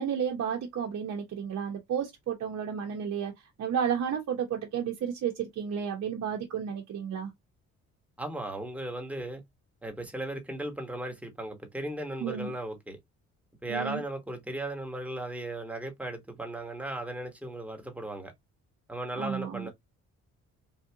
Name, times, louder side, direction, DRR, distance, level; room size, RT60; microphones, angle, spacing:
voice 1, 0.0-3.3 3.6-7.3 12.2-12.5 13.7-14.0 19.2-19.7, right 8 dB, 60° right, 0.8 m, -32 dB
voice 2, 8.2-9.4 9.8-13.0 13.6-18.3 18.9-19.7, right 1 dB, 5° right, 1.2 m, -36 dB
3.4 x 2.4 x 2.8 m
cardioid pair, 90°, 30 cm